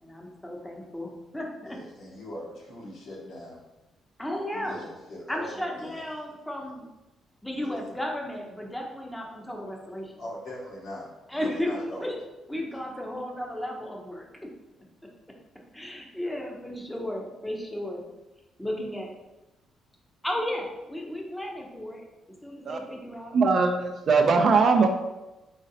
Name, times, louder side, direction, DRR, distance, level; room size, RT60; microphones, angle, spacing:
voice 1, 0.0-1.8 4.2-4.8 5.3-6.8 7.4-10.1 11.3-12.1 12.5-14.2 15.7-18.0 18.6-19.1 20.2-22.0 22.4-23.3, left 1 dB, 5° left, 0 dB, 0.7 m, -34 dB
voice 2, 1.7-3.6 4.5-6.1 7.6-7.8 10.2-12.1, left 1 dB, 75° left, -5 dB, 1.5 m, -41 dB
voice 3, 23.3-24.9, right 4 dB, 55° right, 5 dB, 0.4 m, -20 dB
3.9 x 3.1 x 2.7 m, 1.0 s
cardioid pair, 90°, 0 cm